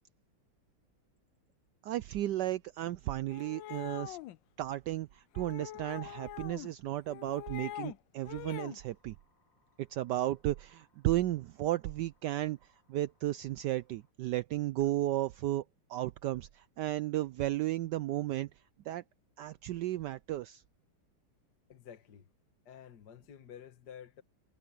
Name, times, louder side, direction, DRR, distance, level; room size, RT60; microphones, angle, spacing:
voice 1, 1.8-4.2 4.6-9.1 9.8-18.5 18.8-19.0 19.4-20.6, right 14 dB, 85° right, 0.9 m, -34 dB
sound 1, 3.3-4.4 5.3-6.7 7.1-8.0 8.2-8.8, left 14 dB, 75° left, 1.2 m, -44 dB
sound 2, 8.8-14.1, left 3 dB, 35° left, 7.8 m, -76 dB
voice 2, 21.7-22.3 22.7-24.2, left 9 dB, 50° left, 1.9 m, -51 dB
omnidirectional pair, 2.4 m